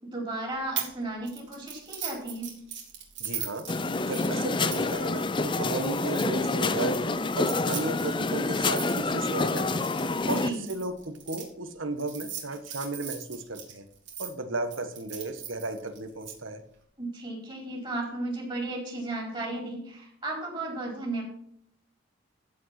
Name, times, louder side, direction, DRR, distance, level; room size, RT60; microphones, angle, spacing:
voice 1, 0.1-2.6 10.2-10.6 17.0-21.2, right 2 dB, 25° right, -1 dB, 4.6 m, -34 dB
sound 1, 0.8-1.0 1.3-6.6 7.3-11.4 12.0-14.3 14.7-16.3, right 9 dB, 65° right, 3.4 m, -39 dB
voice 2, 3.2-3.6 4.0-7.0 7.4-9.9 10.3-13.9 14.2-16.6, right 2 dB, 85° right, 8 dB, 1.5 m, -34 dB
sound 2, 3.7-10.5, left 3 dB, 25° left, 0.5 m, -28 dB
15.0 x 5.3 x 6.0 m, 0.66 s
head